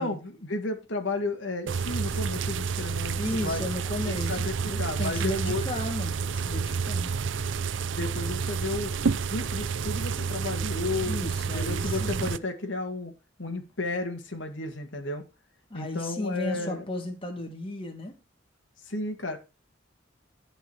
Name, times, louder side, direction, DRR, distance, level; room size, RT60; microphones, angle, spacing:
voice 1, 0.0-3.6 4.1-5.6 8.0-11.2 11.5-13.1 13.4-15.3 15.7-16.8 18.8-19.4, left 2 dB, 85° left, 2.2 m, -33 dB
sound 1, 1.7-12.4, right 5 dB, 85° right, 0.6 m, -30 dB
voice 2, 3.2-7.1 11.0-12.3 15.7-18.1, left 1 dB, 30° left, 2.2 m, -34 dB
11.5 x 5.6 x 4.8 m
head